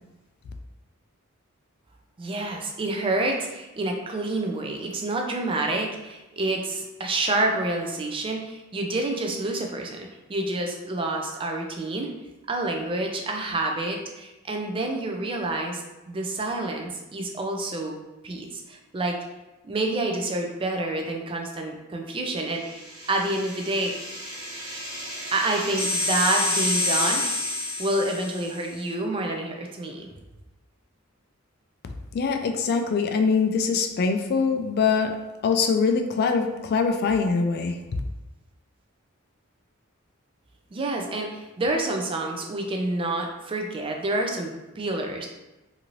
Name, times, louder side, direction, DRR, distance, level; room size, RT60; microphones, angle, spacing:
voice 1, 2.2-12.1 12.5-17.9 18.2-19.2 19.6-23.9 25.3-27.3 27.8-30.1 40.7-45.3, right 2 dB, 25° right, 2 dB, 0.4 m, -28 dB
sound 1, 22.6-28.6, left 2 dB, 80° right, 1.2 m, -29 dB
voice 2, 32.1-35.1 35.4-37.8, left 5 dB, 50° left, 6 dB, 0.3 m, -23 dB
2.7 x 2.5 x 2.9 m, 1.0 s
head